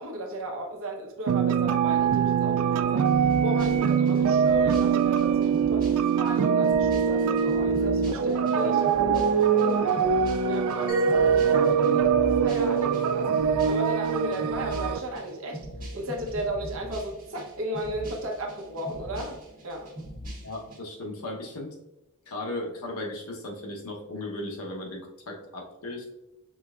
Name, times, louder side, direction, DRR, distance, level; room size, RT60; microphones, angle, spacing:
voice 1, 0.0-12.1 12.4-15.6 15.9-19.4 19.6-19.9, equal, 65° right, 2 dB, 0.9 m, -35 dB
sound 1, 1.3-15.0, right 7 dB, 80° right, 0.3 m, -24 dB
sound 2, 3.0-20.8, equal, 40° right, 1.5 m, -41 dB
Mallet percussion, 10.9-15.5, right 6 dB, 35° left, 1.5 m, -27 dB
voice 2, 20.4-21.8 22.3-26.1, left 1 dB, 85° left, 0 dB, 1.0 m, -36 dB
6.0 x 3.3 x 2.4 m, 0.98 s
head